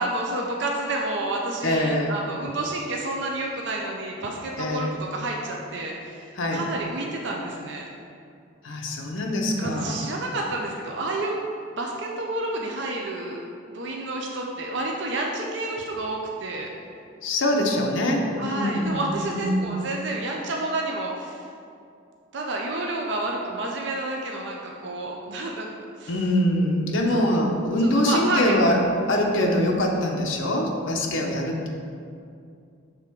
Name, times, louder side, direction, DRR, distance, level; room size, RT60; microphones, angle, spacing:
voice 1, 0.0-7.9 9.6-11.4 11.7-16.7 18.4-21.4 22.3-25.7 26.0-26.1 27.1-27.2 27.9-28.5, right 2 dB, 60° right, 0 dB, 0.5 m, -30 dB
voice 2, 1.6-2.1 4.6-4.9 6.4-6.6 8.6-10.0 17.2-19.6 26.1-28.8 29.1-31.7, left 1 dB, 70° left, 0 dB, 0.8 m, -24 dB
6.7 x 3.5 x 4.5 m, 2.4 s
head